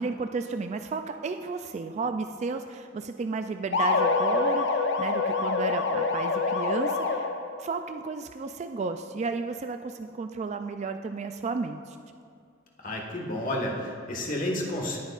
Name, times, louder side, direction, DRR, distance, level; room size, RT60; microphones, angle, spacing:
voice 1, 0.0-7.3 7.6-12.0, right 4 dB, 35° right, 7 dB, 0.3 m, -33 dB
sound 1, 3.7-7.6, left 4 dB, 65° left, 0.7 m, -26 dB
voice 2, 12.8-15.0, left 1 dB, 45° left, -1 dB, 1.5 m, -31 dB
17.5 x 9.0 x 2.5 m, 2.4 s
head